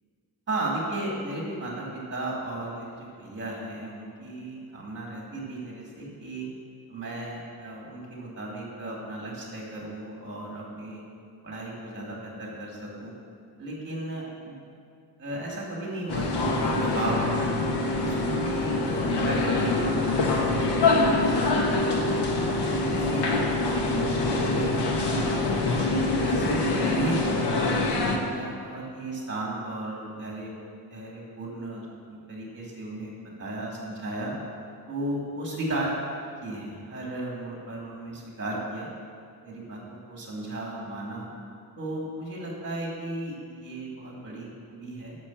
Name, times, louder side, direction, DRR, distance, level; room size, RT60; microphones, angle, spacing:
voice 1, 0.5-6.5 6.9-11.0 11.4-13.1 13.6-14.6 15.2-17.6 18.0-19.9 20.3-21.7 22.1-27.4 27.9-30.5 30.9-34.3 34.9-35.9 36.4-38.9 39.4-41.3 41.8-45.2, right 2 dB, 30° right, -3 dB, 2.6 m, -35 dB
sound 1, 16.1-28.2, left 2 dB, 85° left, 1.3 m, -25 dB
10.5 x 6.2 x 7.3 m, 2.3 s
wide cardioid pair, 170°, 39 cm